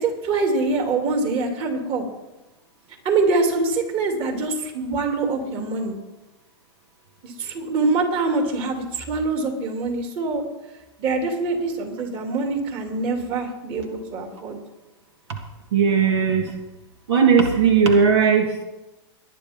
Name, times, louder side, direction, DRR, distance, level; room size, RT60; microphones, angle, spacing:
voice 1, 0.0-2.0 3.0-5.9 7.2-10.4 11.0-14.6, right 3 dB, 40° right, 3 dB, 2.7 m, -24 dB
voice 2, 15.7-16.5 17.1-18.6, right 6 dB, 75° right, 4 dB, 1.7 m, -17 dB
19.5 x 10.5 x 3.6 m, 1.0 s
hypercardioid pair, 125°, 14 cm